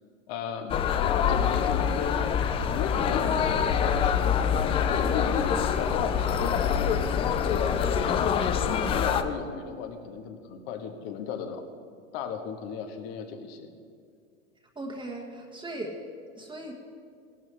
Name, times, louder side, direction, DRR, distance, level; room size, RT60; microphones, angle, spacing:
voice 1, 0.3-0.9 1.3-2.2 2.7-4.3 4.6-11.6 12.1-13.7, left 6 dB, 55° left, 6 dB, 1.5 m, -36 dB
sound 1, 0.7-9.2, left 7 dB, 15° left, 0.3 m, -25 dB
voice 2, 14.7-16.0 16.4-16.7, right 1 dB, 10° right, 0 dB, 1.4 m, -38 dB
17.0 x 12.0 x 3.4 m, 2.2 s
hypercardioid pair, 105°, 38 cm